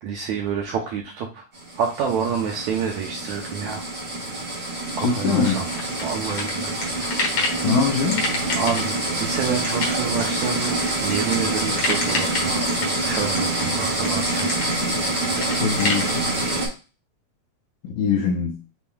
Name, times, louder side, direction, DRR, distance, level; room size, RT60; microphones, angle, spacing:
voice 1, 0.0-1.4 1.8-3.9 5.0-5.7 6.0-6.8 7.4-7.7 8.6-12.7 13.0-14.5, right 6 dB, 75° right, 1.7 m, -28 dB
sound 1, 1.5-16.7, right 2 dB, 35° right, 1.0 m, -26 dB
voice 2, 5.0-5.7 7.6-8.2 15.6-16.3 17.8-18.6, left 5 dB, 75° left, 1.9 m, -22 dB
sound 2, 5.4-7.6 8.1-16.1, left 3 dB, 55° left, 1.8 m, -28 dB
7.1 x 2.9 x 2.3 m
omnidirectional pair, 4.1 m